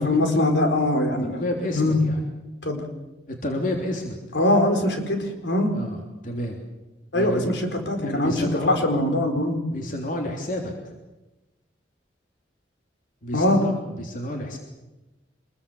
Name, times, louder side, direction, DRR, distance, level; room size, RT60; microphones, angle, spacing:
voice 1, 0.0-1.4 1.7-2.0 2.6-2.8 4.3-5.7 7.1-9.6 13.3-13.6, left 1 dB, 75° left, 4 dB, 4.7 m, -22 dB
voice 2, 1.2-2.2 3.3-4.2 5.7-6.6 7.1-7.5 8.0-8.8 9.7-10.7 13.2-14.6, left 1 dB, 45° left, 2 dB, 3.4 m, -30 dB
25.5 x 22.0 x 7.1 m, 1.1 s
head